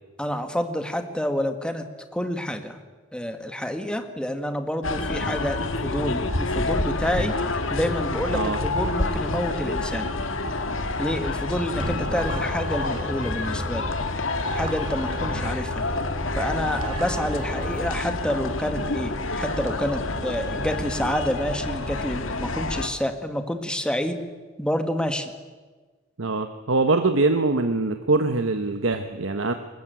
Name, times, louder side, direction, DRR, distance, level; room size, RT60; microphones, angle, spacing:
voice 1, 0.2-1.9 2.1-2.8 3.1-7.4 7.7-10.1 11.0-13.9 14.5-15.9 16.4-24.2 24.6-25.3, equal, 5° left, 7 dB, 1.7 m, -28 dB
sound 1, 4.8-22.9, left 2 dB, 80° left, 1.9 m, -28 dB
sound 2, 11.5-17.9, equal, 25° right, 2.7 m, -36 dB
voice 2, 26.2-29.5, right 3 dB, 80° right, 7 dB, 1.2 m, -23 dB
21.5 x 20.0 x 9.3 m, 1.4 s
head